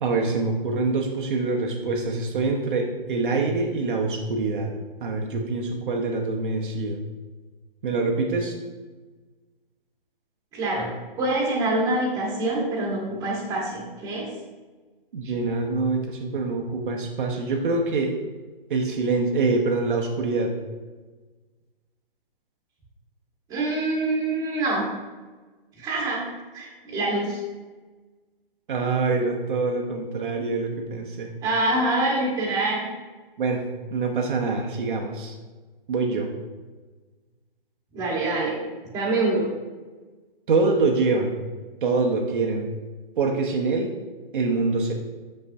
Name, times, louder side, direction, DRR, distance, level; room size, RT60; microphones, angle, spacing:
voice 1, 0.0-4.7 5.0-7.0 7.8-8.5 15.1-18.1 18.7-20.5 28.7-31.3 33.4-33.6 33.9-35.4 35.9-36.3 40.5-41.4 41.8-42.7 43.2-43.9 44.3-44.9, right 3 dB, 60° right, 1 dB, 0.9 m, -25 dB
voice 2, 10.5-10.9 11.2-14.3 23.5-24.8 25.8-26.3 26.5-27.4 31.4-32.9 37.9-38.6 38.9-39.4, right 2 dB, 10° right, -4 dB, 1.3 m, -25 dB
7.1 x 5.5 x 2.6 m, 1.3 s
hypercardioid pair, 150°, 29 cm